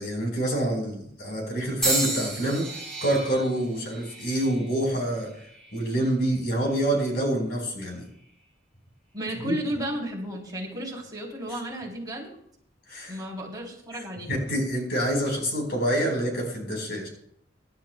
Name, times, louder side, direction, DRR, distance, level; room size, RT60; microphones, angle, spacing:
voice 1, 0.0-2.7 3.0-5.3 5.7-8.1 9.4-9.5 11.5-11.6 12.9-13.2 13.9-17.1, right 1 dB, 55° left, 2 dB, 4.3 m, -27 dB
sound 1, 1.8-5.9 6.7-7.1 8.0-8.2, right 2 dB, 5° left, 5.9 m, -32 dB
voice 2, 9.1-12.4 13.1-14.3, right 1 dB, 20° right, -2 dB, 3.3 m, -33 dB
24.0 x 11.5 x 2.2 m, 0.68 s
head